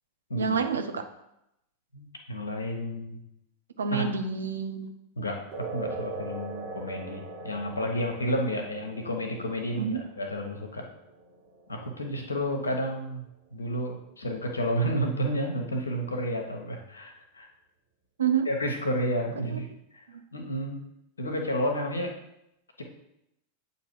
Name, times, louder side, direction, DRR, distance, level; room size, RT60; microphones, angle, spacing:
voice 1, 0.4-1.1 3.8-4.9 9.8-10.0 18.2-18.5 19.5-19.6, right 6 dB, 70° right, 7 dB, 0.5 m, -28 dB
voice 2, 1.9-3.2 3.9-4.0 5.2-10.8 11.7-13.3 13.5-17.5 18.5-19.7 20.3-20.8 21.2-22.1 22.8-22.9, equal, 75° left, 3 dB, 1.0 m, -31 dB
sound 1, 5.5-12.5, right 3 dB, 40° right, 1.4 m, -41 dB
8.2 x 2.8 x 4.5 m, 0.83 s
figure-of-eight pair, 90°, 0 cm